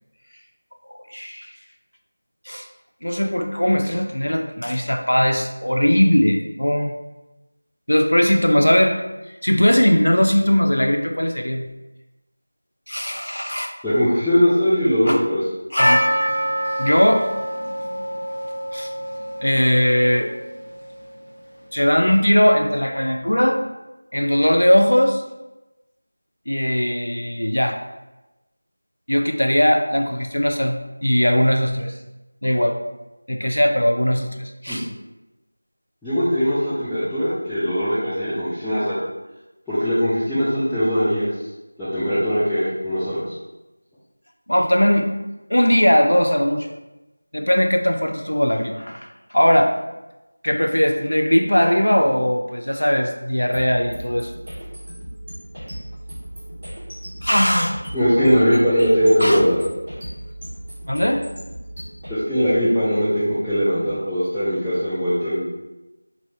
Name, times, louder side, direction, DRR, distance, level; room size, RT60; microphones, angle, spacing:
voice 1, 0.9-1.5 2.5-2.7 3.0-6.9 7.9-11.7 12.9-13.7 15.1-15.2 15.7-16.1 16.8-17.3 18.7-18.9 19.4-20.3 21.7-23.6 24.1-25.2 26.5-27.8 29.1-31.9 32.4-32.8 33.3-34.9 44.5-45.1 45.5-46.7 47.3-49.8 50.4-54.3 57.2-57.8 59.2-59.4 60.9-61.2, equal, 90° left, 4 dB, 0.4 m, -19 dB
voice 2, 13.8-15.4 34.7-34.8 36.0-39.0 39.7-41.3 41.8-43.2 57.9-59.6 62.1-65.4, equal, ahead, -19 dB, 0.3 m, -20 dB
Percussion, 15.8-20.7, equal, 25° left, 1.2 m, -25 dB
sound 1, 53.5-62.2, right 1 dB, 20° right, 1.3 m, -36 dB
2.7 x 2.6 x 3.1 m, 1.0 s
figure-of-eight pair, 175°, 0 cm